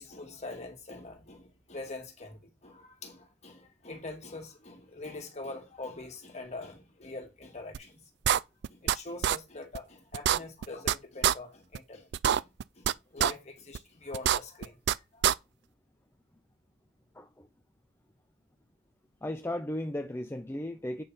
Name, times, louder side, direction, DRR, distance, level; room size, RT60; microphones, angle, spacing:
voice 1, 0.0-8.0 8.7-15.3, left 2 dB, 35° left, 2.2 m, -44 dB
sound 1, 7.7-7.8 8.2-9.0 9.2-9.4 9.7-9.8 10.1-10.9 11.2-11.3 11.7-11.8 12.1-12.9 13.2-13.3 13.7-13.8 14.1-14.9 15.2-15.3, right 10 dB, 60° right, 0.3 m, -25 dB
voice 2, 17.1-17.5 19.2-21.0, left 1 dB, 15° left, 0.6 m, -35 dB
8.7 x 3.8 x 5.5 m
head